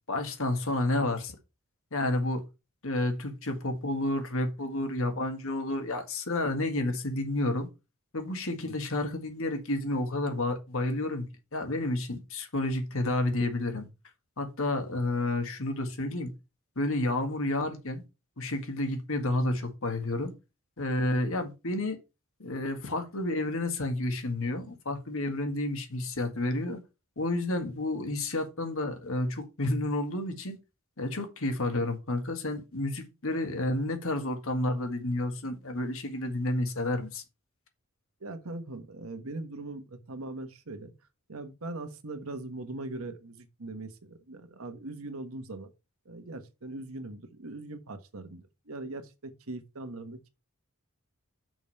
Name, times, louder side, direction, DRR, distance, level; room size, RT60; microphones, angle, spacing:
voice 1, 0.1-1.4 1.9-2.4 2.8-7.7 8.1-11.3 11.5-13.9 14.4-16.3 16.8-18.0 18.4-20.3 20.8-22.0 22.4-26.8 27.2-30.6 31.0-37.2, left 2 dB, 65° left, 1.8 m, -30 dB
voice 2, 38.2-40.9 41.3-45.7 46.0-50.3, right 2 dB, 70° right, 1.3 m, -40 dB
6.2 x 5.3 x 5.5 m
head